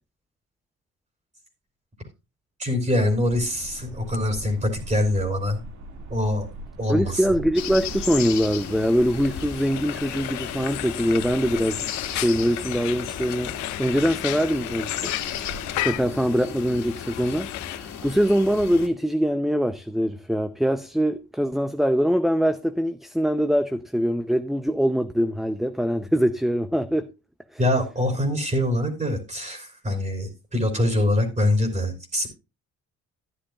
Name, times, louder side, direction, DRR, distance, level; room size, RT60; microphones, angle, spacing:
voice 1, 2.6-5.6 6.1-6.5 6.8-7.2 27.6-32.3, left 1 dB, 25° right, 3.4 m, -24 dB
sound 1, 3.1-16.0, right 1 dB, 85° right, 2.4 m, -42 dB
voice 2, 6.9-13.5 13.8-15.1 15.8-27.1, equal, ahead, 0.7 m, -23 dB
sound 2, 7.5-18.9, left 8 dB, 70° left, 2.1 m, -35 dB
Frying (food), 8.6-17.8, left 16 dB, 90° left, 0.6 m, -34 dB
12.5 x 10.0 x 2.4 m
cardioid pair, 100°, 29 cm